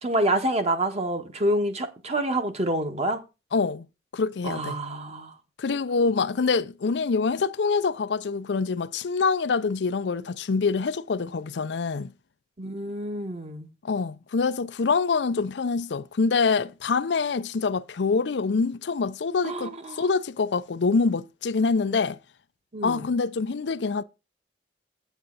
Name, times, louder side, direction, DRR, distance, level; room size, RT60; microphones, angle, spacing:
voice 1, 0.0-3.2 4.4-5.3 12.6-13.7 19.4-20.1 22.7-23.1, right 1 dB, 40° right, 1.4 m, -27 dB
voice 2, 3.5-3.9 4.1-4.8 5.6-12.1 13.8-22.2 22.8-24.0, left 4 dB, 75° left, 0.5 m, -25 dB
8.7 x 8.2 x 4.0 m
head